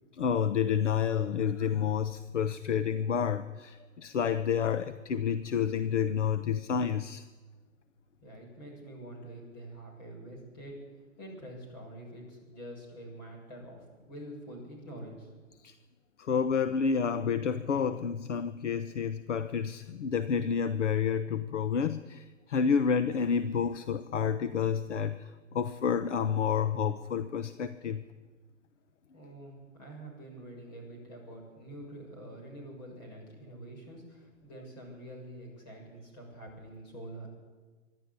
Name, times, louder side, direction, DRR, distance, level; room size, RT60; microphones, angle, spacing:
voice 1, 0.1-7.2 15.6-15.7 16.2-28.0, left 7 dB, 60° left, 12 dB, 1.0 m, -29 dB
voice 2, 8.2-10.8 11.2-15.3 29.1-37.3, right 1 dB, 30° left, 0 dB, 7.5 m, -46 dB
25.0 x 11.5 x 9.7 m, 1.4 s
hypercardioid pair, 170°, 40 cm